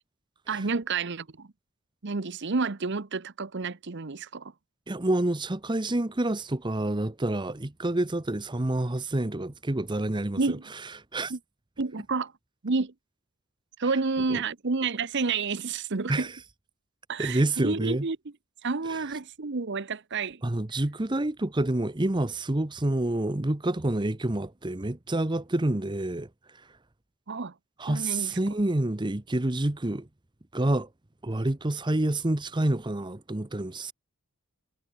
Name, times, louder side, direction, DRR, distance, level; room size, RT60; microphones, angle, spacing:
voice 1, 0.5-1.5 2.0-4.5 10.4-10.6 11.3-11.4 11.8-12.3 12.6-12.9 13.8-16.3 17.1-18.2 18.6-20.4 27.3-27.5 27.9-28.4, right 4 dB, 50° right, 0.9 m, -30 dB
voice 2, 4.9-10.6 11.1-11.3 14.3-14.4 16.1-16.3 17.2-18.0 18.9-19.0 20.4-26.3 27.8-30.1 30.5-30.9 31.2-33.9, right 1 dB, 20° right, 0.9 m, -28 dB
head